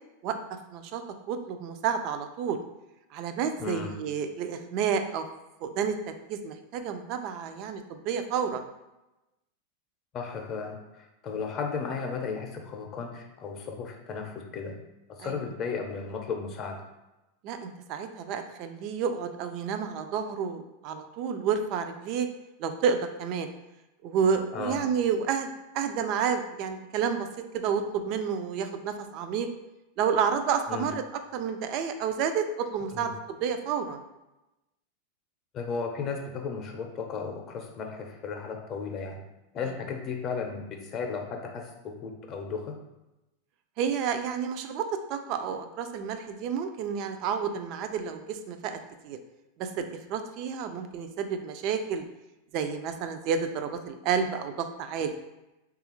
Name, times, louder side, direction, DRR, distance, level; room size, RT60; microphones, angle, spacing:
voice 1, 0.2-1.0 1.3-2.6 3.1-5.3 5.6-8.7 15.2-15.3 17.4-22.3 22.6-23.5 24.0-27.3 27.5-29.5 30.0-31.0 31.3-34.0 43.8-48.8 49.0-49.2 49.6-52.0 52.5-55.1, right 7 dB, 50° right, 7 dB, 0.3 m, -30 dB
voice 2, 3.6-3.9 10.1-14.8 15.1-16.8 24.5-24.8 30.7-30.9 32.9-33.1 35.5-39.2 39.5-42.8, left 5 dB, 40° left, 2 dB, 0.6 m, -35 dB
3.3 x 2.3 x 3.0 m, 0.97 s
hypercardioid pair, 100°, 0 cm